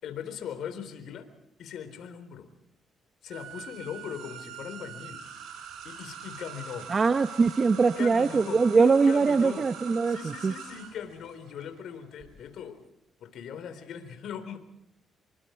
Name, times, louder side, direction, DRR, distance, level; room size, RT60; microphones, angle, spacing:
voice 1, 0.0-1.3 1.6-2.5 3.2-5.2 5.8-6.9 8.0-8.6 9.0-9.7 10.1-12.8 13.2-14.6, left 8 dB, 75° left, 9 dB, 4.0 m, -39 dB
sound 1, 3.3-12.3, right 7 dB, 85° right, 6.9 m, -43 dB
voice 2, 6.9-10.5, right 4 dB, 35° right, 10 dB, 0.9 m, -22 dB
27.0 x 24.5 x 4.6 m, 0.80 s
cardioid pair, 90°, 0 cm